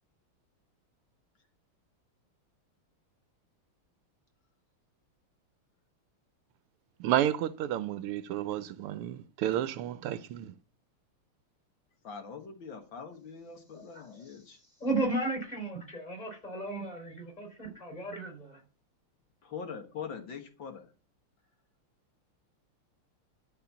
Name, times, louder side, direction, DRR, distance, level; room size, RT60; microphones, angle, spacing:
voice 1, 7.0-10.5, right 12 dB, 85° right, 1.6 m, -31 dB
voice 2, 12.0-14.6 19.4-20.9, left 6 dB, 60° left, 2.1 m, -43 dB
voice 3, 13.7-14.2 14.8-18.6, right 2 dB, 15° left, 4.4 m, -34 dB
12.5 x 4.5 x 7.1 m
omnidirectional pair, 2.4 m